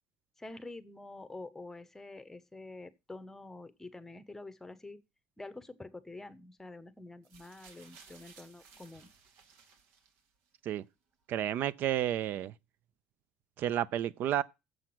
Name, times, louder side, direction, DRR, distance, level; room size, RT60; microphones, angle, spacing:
voice 1, 0.4-5.0 5.4-9.1, left 2 dB, 10° left, 1.0 m, -47 dB
sound 1, 7.2-10.5 11.4-11.5, right 5 dB, 80° right, 2.3 m, -58 dB
voice 2, 11.3-12.5 13.6-14.4, right 11 dB, 60° right, 0.5 m, -31 dB
7.8 x 5.8 x 7.8 m
cardioid pair, 120°, 4 cm